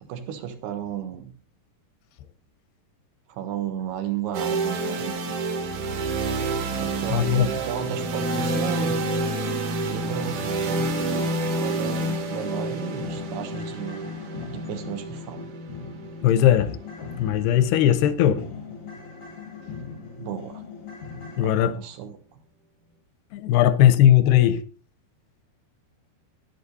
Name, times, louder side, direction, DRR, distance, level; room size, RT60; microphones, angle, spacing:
voice 1, 0.0-1.3 3.3-5.4 6.8-9.0 9.9-14.1 14.5-15.5 20.2-20.6 21.4-22.4, right 9 dB, 80° right, 3.5 m, -34 dB
sound 1, 4.3-18.2, right 2 dB, 55° right, 2.7 m, -28 dB
voice 2, 7.1-7.5 16.2-18.4 21.4-21.7 23.3-24.6, left 11 dB, 85° left, 2.8 m, -19 dB
sound 2, 12.4-21.4, left 5 dB, 55° left, 0.9 m, -40 dB
11.5 x 10.5 x 4.1 m
omnidirectional pair, 4.6 m